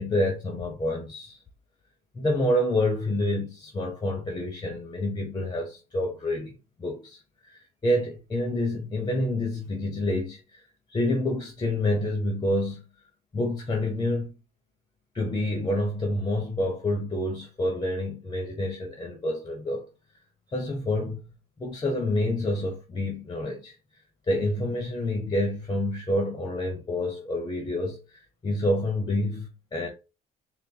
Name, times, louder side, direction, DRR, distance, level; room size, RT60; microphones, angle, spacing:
voice 1, 0.0-1.4 2.1-10.6 10.9-12.8 13.3-14.3 15.1-19.8 20.5-21.2 21.6-23.8 24.3-29.9, left 1 dB, 25° left, 0.9 m, -28 dB
4.0 x 2.2 x 3.8 m
cardioid pair, 110°, 17 cm